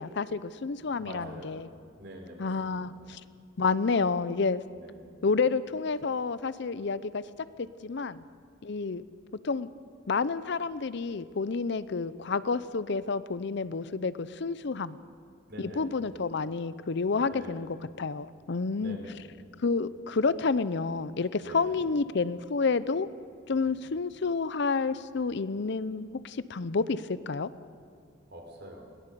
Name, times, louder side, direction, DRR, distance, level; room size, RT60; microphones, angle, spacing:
voice 1, 0.0-1.7 2.4-3.2 3.6-4.6 5.2-7.2 7.6-8.2 8.6-9.0 9.4-9.7 10.1-15.0 15.6-19.0 19.6-23.1 23.5-27.5, left 4 dB, 60° left, 16 dB, 0.6 m, -29 dB
voice 2, 0.6-1.6 2.0-3.1 4.7-5.1 15.5-16.1 17.3-17.6 18.3-18.4 18.8-19.2 21.4-21.8 23.6-23.8 28.3-28.8, equal, 60° right, 1 dB, 4.4 m, -45 dB
21.5 x 18.0 x 6.9 m, 2.2 s
head